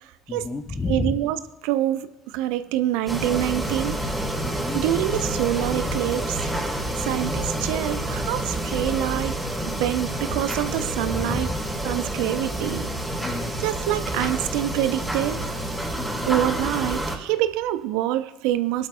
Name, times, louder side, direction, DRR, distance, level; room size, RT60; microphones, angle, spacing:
voice 1, 0.3-1.2 4.4-4.8 6.9-7.2 11.1-11.6 13.2-13.6 16.0-16.3, left 3 dB, 30° left, 6 dB, 0.9 m, -31 dB
voice 2, 0.9-4.0 4.7-6.5 7.0-9.3 9.7-11.5 11.8-12.9 13.6-15.5 16.3-18.9, right 13 dB, 75° right, 13 dB, 0.5 m, -26 dB
sound 1, 3.1-17.2, right 1 dB, ahead, 3.5 m, -28 dB
21.0 x 12.0 x 2.2 m, 1.1 s
hypercardioid pair, 60°, 0 cm